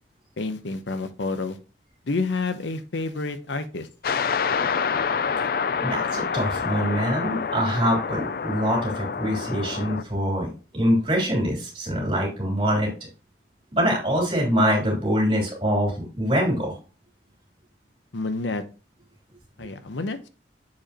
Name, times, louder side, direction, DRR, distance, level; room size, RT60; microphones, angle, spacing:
voice 1, 0.4-1.6 2.1-3.9 18.1-18.6 19.6-20.3, left 3 dB, 85° left, 0.8 m, -29 dB
sound 1, 4.0-10.0, left 6 dB, 50° left, 0.3 m, -27 dB
voice 2, 5.8-12.9 13.7-16.7, equal, 30° right, 3.3 m, -24 dB
7.3 x 5.0 x 2.9 m
head